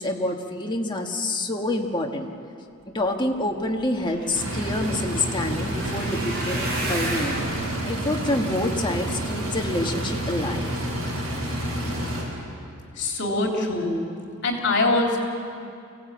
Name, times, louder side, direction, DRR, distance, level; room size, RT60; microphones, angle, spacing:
voice 1, 0.0-2.3 2.9-7.3 7.9-10.7, left 1 dB, 20° left, 2 dB, 1.5 m, -27 dB
sound 1, 3.6-9.9 10.5-10.9 11.4-11.6 11.8-11.9, right 1 dB, 45° right, 6.6 m, -35 dB
sound 2, 4.3-12.2, right 1 dB, 75° right, 7.1 m, -29 dB
voice 2, 13.0-14.0 14.4-15.2, left 2 dB, 55° left, 1 dB, 3.3 m, -23 dB
24.5 x 16.5 x 8.7 m, 2.5 s
head